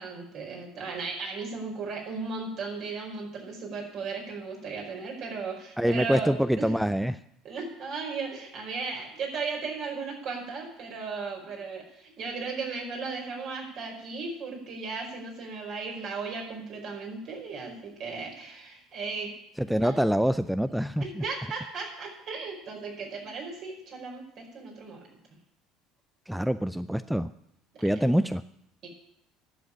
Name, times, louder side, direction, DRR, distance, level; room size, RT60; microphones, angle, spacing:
voice 1, 0.0-6.8 7.4-19.3 19.8-20.1 21.0-25.0 27.7-28.1 28.8-28.9, right 4 dB, 50° right, 0 dB, 4.9 m, -36 dB
voice 2, 5.8-7.2 19.6-21.2 26.3-27.3 27.8-28.4, equal, ahead, 13 dB, 0.4 m, -25 dB
11.0 x 7.2 x 9.7 m, 0.78 s
hypercardioid pair, 65°, 0 cm